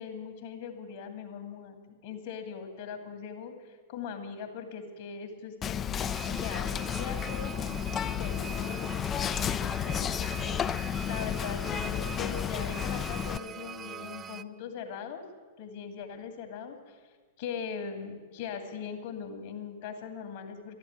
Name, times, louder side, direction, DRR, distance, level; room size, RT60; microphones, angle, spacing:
voice 1, 0.0-1.8 2.0-15.2 15.6-17.1 17.4-20.8, left 6 dB, 55° left, 5 dB, 2.5 m, -40 dB
Whispering, 5.6-13.4, left 8 dB, 25° left, 0.4 m, -32 dB
sound 1, 6.0-14.4, right 8 dB, 25° right, 0.5 m, -43 dB
12.0 x 11.5 x 8.8 m, 1.5 s
figure-of-eight pair, 100°, 0 cm